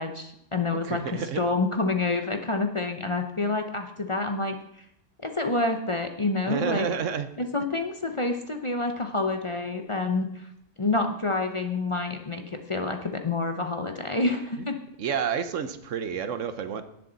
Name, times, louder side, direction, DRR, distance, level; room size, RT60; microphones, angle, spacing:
voice 1, 0.0-4.6 5.2-6.9 7.4-10.5 10.8-14.8, left 3 dB, 30° left, 5 dB, 0.7 m, -28 dB
voice 2, 0.8-1.4 6.5-7.3 14.6-14.7 15.0-16.8, right 7 dB, 80° right, 10 dB, 1.2 m, -29 dB
18.0 x 6.9 x 4.0 m, 0.77 s
omnidirectional pair, 1.3 m